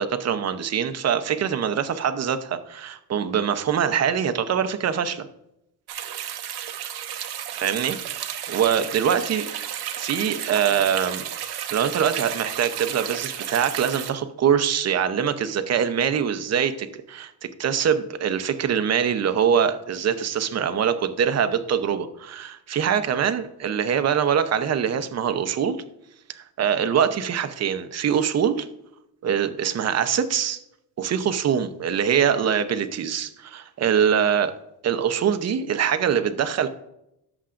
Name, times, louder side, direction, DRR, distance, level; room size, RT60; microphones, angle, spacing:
voice 1, 0.0-5.3 7.5-8.0 8.5-9.5 10.0-11.3 11.7-17.3 17.6-25.8 26.3-28.7 29.2-30.6 31.0-34.6 34.8-36.7, right 8 dB, 40° right, 9 dB, 0.8 m, -23 dB
sound 1, 5.9-14.1, right 10 dB, 65° right, 1.0 m, -33 dB
17.0 x 7.3 x 2.6 m, 0.83 s
cardioid pair, 150°, 41 cm